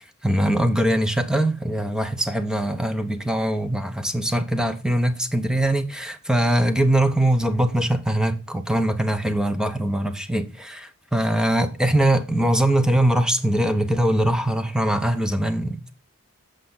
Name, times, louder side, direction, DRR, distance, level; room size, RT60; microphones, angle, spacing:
voice 1, 0.2-15.9, right 1 dB, 5° right, 0.7 m, -22 dB
8.3 x 6.4 x 3.9 m
head